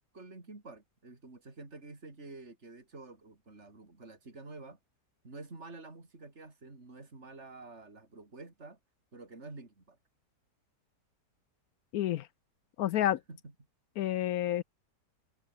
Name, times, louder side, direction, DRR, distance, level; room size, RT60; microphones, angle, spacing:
voice 1, 0.1-4.8 5.2-8.8 9.1-10.0 13.3-13.5, right 3 dB, 40° right, 4.3 m, -49 dB
voice 2, 11.9-12.3 12.8-13.2 14.0-14.6, left 12 dB, 70° left, 0.9 m, -29 dB
omnidirectional pair, 1.8 m